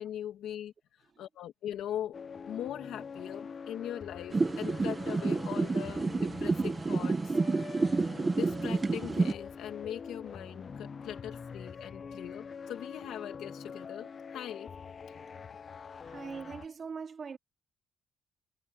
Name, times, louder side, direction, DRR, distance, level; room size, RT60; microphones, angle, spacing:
voice 1, 0.0-7.8 8.4-14.7 15.1-15.2, left 11 dB, 80° left, 1.6 m, -41 dB
sound 1, 2.1-16.7, left 6 dB, 45° left, 1.1 m, -45 dB
sound 2, 4.3-9.3, right 3 dB, 25° right, 1.3 m, -29 dB
voice 2, 16.0-17.4, right 5 dB, 45° right, 4.0 m, -42 dB
cardioid pair, 90°, 0 cm